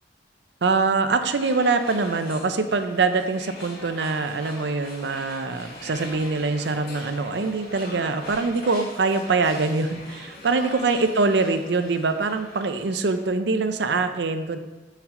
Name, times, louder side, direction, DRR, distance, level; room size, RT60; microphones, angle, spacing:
voice 1, 0.6-14.6, right 3 dB, 75° right, 9 dB, 0.6 m, -24 dB
sound 1, 1.4-13.3, left 2 dB, 55° left, 2.3 m, -42 dB
6.6 x 6.2 x 3.8 m, 1.1 s
head